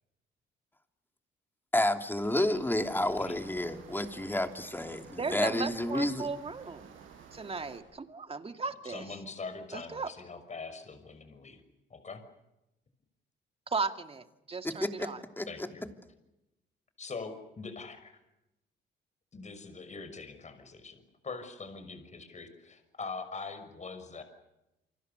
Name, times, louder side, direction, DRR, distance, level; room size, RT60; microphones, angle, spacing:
voice 1, 1.7-6.3 14.6-15.1 15.4-15.7, left 1 dB, 10° left, 5 dB, 3.1 m, -30 dB
sound 1, 2.2-7.8, right 7 dB, 85° right, 7.5 m, -52 dB
voice 2, 5.2-7.0 7.3-9.1 9.7-10.1 13.7-15.2, right 4 dB, 30° right, 7 dB, 2.3 m, -36 dB
voice 3, 8.8-11.6 11.9-12.2 15.5-15.9 17.0-18.2 19.3-24.2, left 4 dB, 35° left, 9 dB, 6.0 m, -43 dB
29.0 x 25.5 x 6.8 m, 0.91 s
cardioid pair, 90°, 20 cm